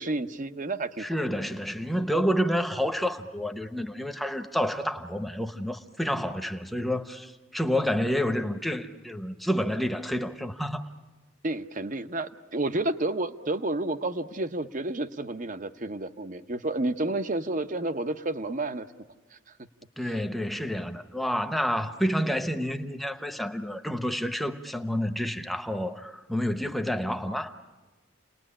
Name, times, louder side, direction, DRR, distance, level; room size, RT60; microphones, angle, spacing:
voice 1, 0.0-1.1 11.4-18.9, right 2 dB, 40° right, 0.8 m, -30 dB
voice 2, 1.0-10.9 20.0-27.5, equal, ahead, 0.9 m, -29 dB
29.5 x 20.0 x 10.0 m
head